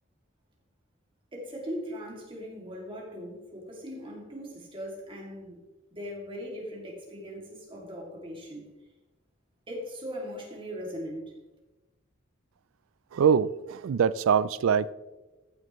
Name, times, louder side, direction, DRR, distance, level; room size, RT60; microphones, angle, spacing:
voice 1, 1.3-5.6 5.9-8.7 9.7-11.3, equal, 25° right, 2.4 m, -39 dB
voice 2, 13.1-14.9, right 7 dB, 85° right, 0.4 m, -23 dB
14.5 x 6.7 x 3.1 m
head